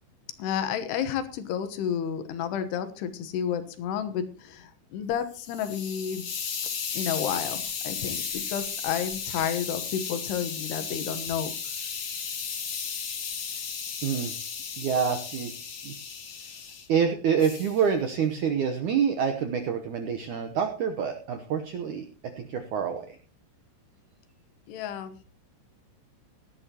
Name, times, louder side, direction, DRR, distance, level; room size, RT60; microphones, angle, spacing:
voice 1, 0.4-6.3 6.9-11.5 24.7-25.2, left 8 dB, 75° left, 10 dB, 3.1 m, -31 dB
Hiss, 5.1-16.9 17.4-17.8, left 6 dB, 45° left, 2.1 m, -35 dB
voice 2, 14.0-14.3 14.8-15.5 15.8-15.9 16.9-22.1 22.4-23.0, right 7 dB, 75° right, 6 dB, 1.8 m, -27 dB
17.5 x 12.0 x 2.9 m, 0.38 s
omnidirectional pair, 4.9 m